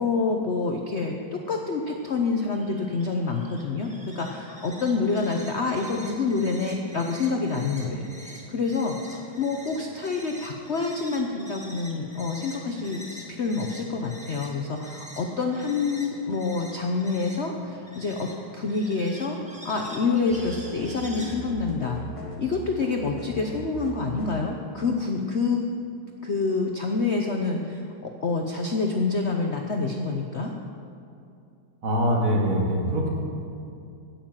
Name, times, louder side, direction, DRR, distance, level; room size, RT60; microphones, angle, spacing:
voice 1, 0.0-13.0 13.4-19.4 19.6-22.0 22.4-25.6 26.2-30.5, left 4 dB, 65° left, 2 dB, 0.6 m, -27 dB
sound 1, 1.8-21.4, equal, 5° right, 1.2 m, -46 dB
sound 2, 20.3-24.5, right 1 dB, 20° left, 0.9 m, -39 dB
voice 2, 31.8-33.1, equal, 80° right, -3 dB, 3.0 m, -23 dB
9.9 x 8.9 x 7.4 m, 2.5 s
omnidirectional pair, 2.2 m